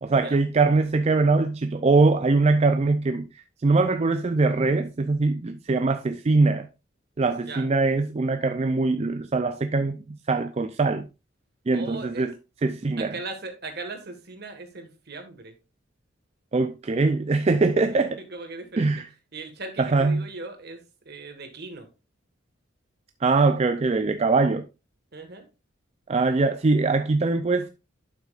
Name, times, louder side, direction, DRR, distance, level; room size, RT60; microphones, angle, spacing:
voice 1, 0.0-6.7 7.2-11.1 11.7-12.3 12.6-13.1 16.5-18.1 18.8-19.0 19.8-20.3 23.2-24.7 26.1-27.7, right 3 dB, 35° right, 0.4 m, -22 dB
voice 2, 11.7-12.3 13.0-15.5 17.9-18.9 19.3-21.9 25.1-25.5 26.4-26.5, right 3 dB, 55° right, 1.6 m, -39 dB
11.0 x 6.2 x 2.4 m
head